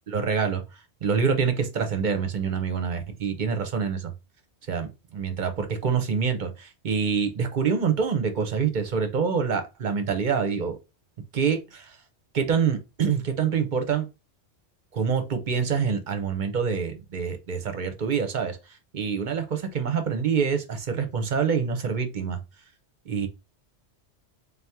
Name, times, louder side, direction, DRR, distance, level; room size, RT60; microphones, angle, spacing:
voice 1, 0.1-0.6 1.0-4.1 4.7-10.8 11.3-11.9 12.3-14.1 14.9-18.6 18.9-22.4 23.1-23.3, right 6 dB, 45° right, 0.8 m, -26 dB
3.7 x 2.9 x 3.4 m
omnidirectional pair, 1.3 m